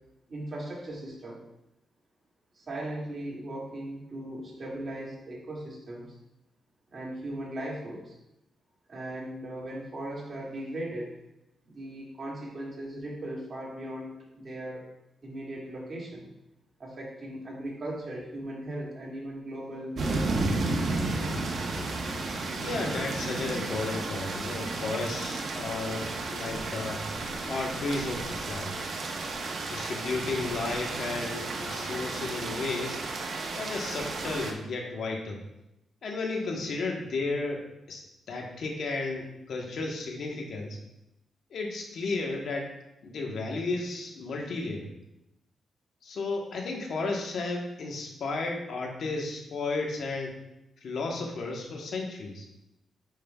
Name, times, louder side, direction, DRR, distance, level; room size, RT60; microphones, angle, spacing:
voice 1, 0.3-1.4 2.6-6.1 6.9-8.2 8.9-11.1 11.7-14.9 15.2-16.3 16.8-20.8, right 1 dB, 40° right, -4 dB, 2.3 m, -38 dB
sound 1, 20.0-34.5, right 3 dB, 60° right, 0.9 m, -33 dB
voice 2, 22.6-27.0 27.5-28.8 29.7-33.0 33.6-35.4 36.0-38.0 38.3-40.8 41.5-42.7 43.0-44.9 46.0-50.3 50.8-52.5, left 3 dB, 70° left, 1 dB, 1.2 m, -33 dB
9.3 x 5.3 x 2.3 m, 0.88 s
cardioid pair, 100°, 0 cm